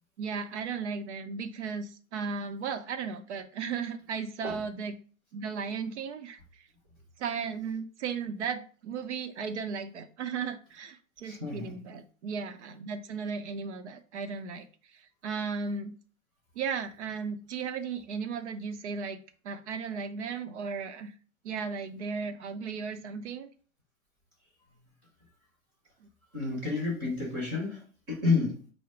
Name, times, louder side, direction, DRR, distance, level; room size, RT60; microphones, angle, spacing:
voice 1, 0.2-4.9 5.3-6.4 7.2-15.9 16.6-19.2 19.4-21.1 21.4-23.5 26.0-26.1, right 5 dB, 55° right, 0.8 m, -35 dB
voice 2, 11.2-11.8 24.7-24.9 26.3-28.7, left 4 dB, 5° right, 0.3 m, -31 dB
4.7 x 2.1 x 4.7 m
figure-of-eight pair, 120°, 42 cm